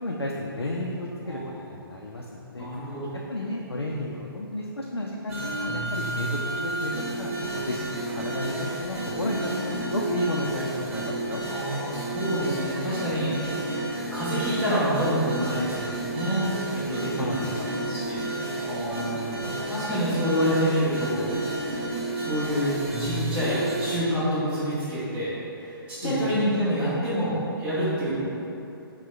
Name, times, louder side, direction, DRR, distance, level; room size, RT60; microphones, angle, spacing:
voice 1, 0.0-2.7 3.3-6.9 7.2-8.5 8.8-11.4 17.2-17.8 26.0-26.3, left 1 dB, 85° left, -2 dB, 0.4 m, -32 dB
voice 2, 1.2-1.6 2.6-3.1 11.5-18.2 18.6-21.3 22.1-25.3 25.6-28.2, equal, 10° right, -14 dB, 1.0 m, -28 dB
sound 1, 5.3-24.0, right 2 dB, 35° right, 0.8 m, -31 dB
5.9 x 2.2 x 3.3 m, 2.8 s
figure-of-eight pair, 130°, 13 cm